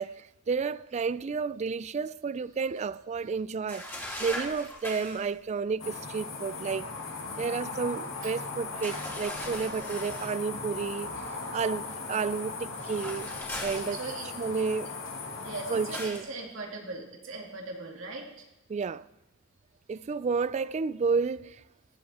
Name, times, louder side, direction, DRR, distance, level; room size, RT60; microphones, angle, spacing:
voice 1, 0.0-6.9 7.4-11.1 11.5-13.3 13.6-14.0 14.4-14.9 15.7-16.2 18.7-19.0 19.9-21.6, right 5 dB, 35° right, 0.3 m, -31 dB
Swimming Breaking Surface, 3.7-5.3 8.8-10.4 12.7-14.5 15.9-16.3, left 1 dB, 10° left, 2.7 m, -39 dB
sound 1, 5.8-16.0, left 3 dB, 80° left, 2.1 m, -38 dB
voice 2, 13.9-14.3 15.3-18.5, right 3 dB, 80° right, 2.3 m, -40 dB
15.5 x 9.5 x 4.2 m
head